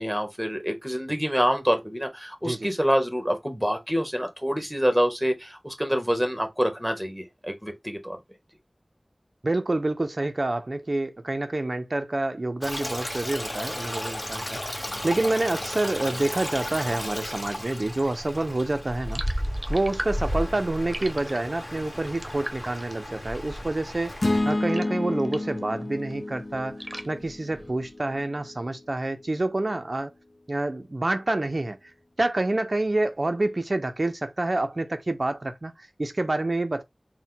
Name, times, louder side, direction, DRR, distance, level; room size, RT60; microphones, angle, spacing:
voice 1, 0.0-8.2, equal, 5° right, 1.1 m, -26 dB
voice 2, 9.4-19.2 19.7-24.2 24.4-30.1 30.5-36.8, right 2 dB, 60° right, 0.4 m, -28 dB
Stream, 12.6-24.4, equal, 40° left, 1.4 m, -33 dB
sound 1, 19.1-25.7 26.0-28.1, right 1 dB, 30° right, 0.7 m, -41 dB
sound 2, 24.2-28.5, left 2 dB, 75° left, 0.5 m, -30 dB
4.1 x 2.1 x 3.7 m
wide cardioid pair, 50°, 0 cm